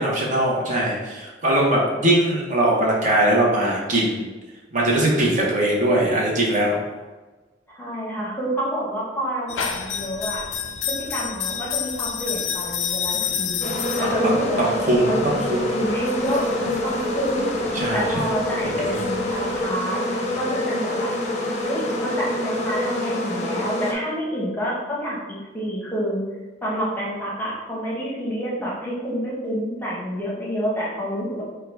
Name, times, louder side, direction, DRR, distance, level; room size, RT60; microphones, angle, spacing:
voice 1, 0.0-4.3 4.7-6.8 14.0-14.2 14.6-15.7 17.7-18.3 18.8-18.9, right 1 dB, 40° right, -3 dB, 0.9 m, -21 dB
voice 2, 7.7-10.4 10.9-13.7 14.0-14.7 15.0-17.5 17.9-20.0 20.4-21.1 21.7-26.2 26.6-31.4, equal, 10° left, -5 dB, 0.8 m, -28 dB
sound 1, 9.5-19.7, left 7 dB, 85° left, 0.4 m, -31 dB
sound 2, 13.6-23.9, left 1 dB, 35° left, 0.5 m, -26 dB
3.7 x 2.3 x 4.4 m, 1.2 s
head